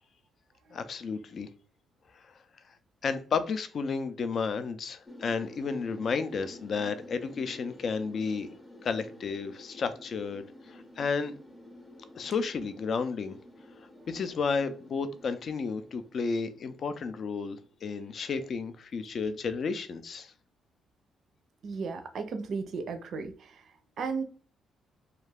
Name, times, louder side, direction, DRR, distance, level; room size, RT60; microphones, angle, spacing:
voice 1, 0.7-1.5 2.2-2.3 3.0-8.5 8.8-11.3 12.2-13.4 14.1-20.3, left 5 dB, 55° left, 0.3 m, -32 dB
sound 1, 5.1-17.8, left 1 dB, 15° left, 0.7 m, -51 dB
voice 2, 21.6-23.5 24.0-24.2, right 4 dB, 60° right, 0.4 m, -34 dB
2.3 x 2.3 x 3.3 m
cardioid pair, 90°, 0 cm